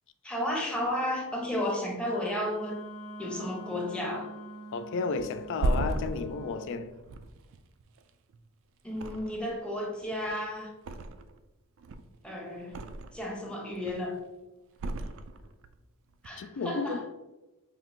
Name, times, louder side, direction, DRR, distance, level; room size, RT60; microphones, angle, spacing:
voice 1, 0.2-2.8 3.2-4.3 8.8-10.7 12.2-12.8 13.1-14.2 16.2-17.0, left 1 dB, 5° left, 0.7 m, -33 dB
Wind instrument woodwind instrument, 1.9-6.7, right 1 dB, 30° left, 0.9 m, -45 dB
voice 2, 4.7-6.9 16.4-17.1, left 4 dB, 60° left, 0.3 m, -33 dB
Thump thud, 5.2-8.5 8.9-9.7 10.0-11.4 11.8-13.3 13.7-14.2 14.8-15.8 16.1-16.3, right 2 dB, 60° right, 0.3 m, -35 dB
5.6 x 2.6 x 2.6 m
head